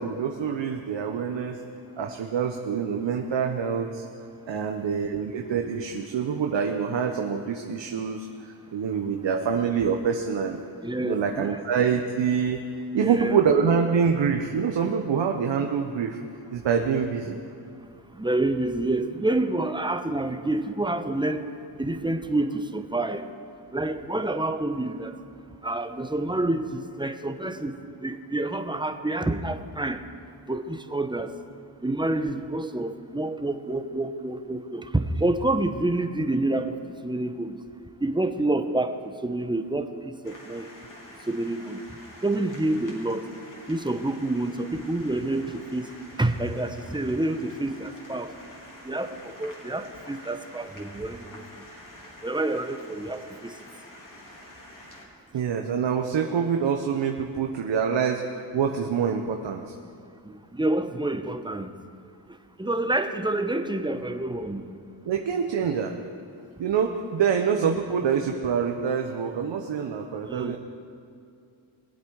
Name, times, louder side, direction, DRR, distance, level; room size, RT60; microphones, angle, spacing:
voice 1, 0.0-1.6 2.0-4.0 4.5-10.6 11.0-12.6 12.9-16.2 16.5-17.4 55.3-58.2 58.5-59.7 65.1-65.9 66.6-70.6, right 6 dB, 60° right, 3 dB, 1.0 m, -26 dB
voice 2, 10.8-11.6 13.0-13.4 18.2-21.4 21.8-23.2 23.7-25.1 25.6-27.7 28.0-30.0 30.5-31.3 31.8-36.6 37.0-37.6 38.0-38.9 39.2-40.7 41.3-41.8 42.2-43.2 43.7-45.9 46.2-48.3 48.8-49.1 49.4-51.4 52.2-53.2 60.6-61.7 62.6-64.7 70.3-70.6, right 2 dB, 10° right, 8 dB, 1.0 m, -28 dB
sound 1, 40.2-55.1, left 1 dB, 40° left, 3.5 m, -47 dB
21.0 x 8.1 x 4.8 m, 2.4 s
cardioid pair, 55°, 49 cm